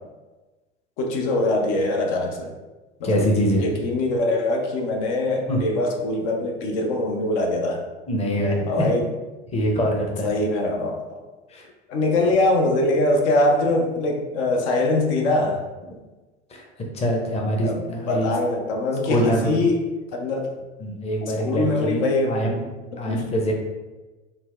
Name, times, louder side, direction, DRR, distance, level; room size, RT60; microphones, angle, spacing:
voice 1, 1.0-2.5 3.0-3.3 3.6-7.8 8.7-9.1 10.2-11.2 11.9-15.6 17.6-19.8 20.1-20.5 21.2-22.4 23.1-23.3, left 2 dB, 65° left, 1 dB, 0.6 m, -23 dB
voice 2, 3.0-3.7 5.5-5.6 8.1-8.9 9.5-10.4 11.5-11.6 16.5-16.6 16.9-18.3 19.1-19.6 20.8-22.6 23.0-23.5, equal, 15° left, 0 dB, 0.6 m, -24 dB
3.9 x 2.1 x 2.4 m, 1.2 s
hypercardioid pair, 80°, 37 cm